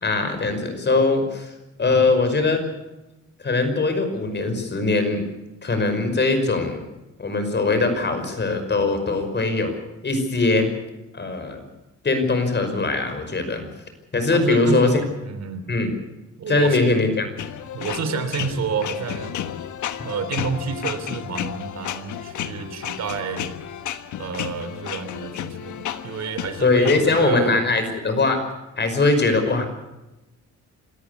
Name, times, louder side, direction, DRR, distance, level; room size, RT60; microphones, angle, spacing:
voice 1, 0.0-1.5 1.8-2.6 3.4-5.2 5.6-6.8 7.2-9.8 10.0-10.7 11.1-11.6 12.0-13.7 14.1-15.0 15.7-15.9 16.5-17.3 26.6-28.4 28.8-29.7, left 3 dB, 35° left, 7 dB, 5.5 m, -21 dB
voice 2, 14.3-15.7 16.4-17.0 17.7-19.4 20.0-23.5 24.2-27.7, right 5 dB, 60° right, 9 dB, 3.2 m, -29 dB
sound 1, 17.4-27.3, left 10 dB, 75° left, 1.5 m, -32 dB
26.5 x 14.0 x 8.4 m, 0.98 s
cardioid pair, 90°, 30 cm